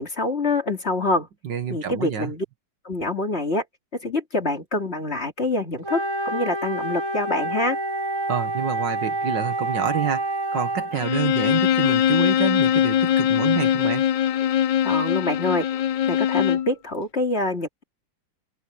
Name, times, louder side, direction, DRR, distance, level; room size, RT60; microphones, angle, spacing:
voice 1, 0.0-1.3 1.7-2.4 2.8-3.6 3.9-7.8 14.8-15.7 16.1-17.8, left 2 dB, 30° left, 2.7 m, -26 dB
voice 2, 1.4-2.3 8.3-14.1, right 8 dB, 65° right, 2.0 m, -28 dB
Wind instrument woodwind instrument, 5.8-11.0, right 2 dB, 85° right, 3.3 m, -27 dB
Bowed string instrument, 10.9-16.7, left 10 dB, 65° left, 1.4 m, -21 dB
omnidirectional pair, 2.2 m